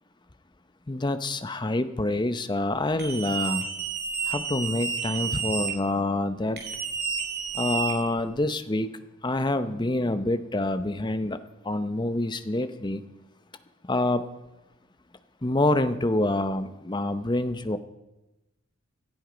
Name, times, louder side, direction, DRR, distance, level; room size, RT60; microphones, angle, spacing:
voice 1, 0.9-3.7 4.3-6.6 7.5-8.9 9.2-11.4 11.6-13.0 13.9-14.2 15.4-17.8, left 2 dB, 20° left, 10 dB, 0.7 m, -26 dB
sound 1, 3.0-5.7 6.6-8.4, right 6 dB, 50° right, 3.4 m, -30 dB
18.0 x 12.5 x 5.1 m, 1.0 s
head